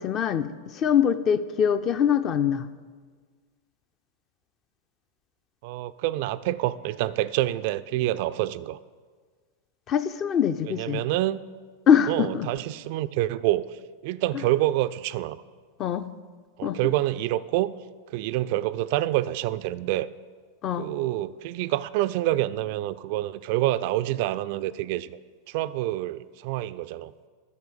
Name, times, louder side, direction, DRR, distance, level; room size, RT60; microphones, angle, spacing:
voice 1, 0.0-2.6 9.9-11.0 11.9-12.5 15.8-16.1 16.6-16.8 20.6-20.9, left 8 dB, 30° left, 12 dB, 0.5 m, -23 dB
voice 2, 5.6-8.8 10.6-11.4 12.1-15.4 16.6-17.7 18.1-20.1 20.8-25.2 25.5-27.1, right 15 dB, 45° right, 14 dB, 0.3 m, -27 dB
11.0 x 6.8 x 6.8 m, 1.5 s
figure-of-eight pair, 90°, 0 cm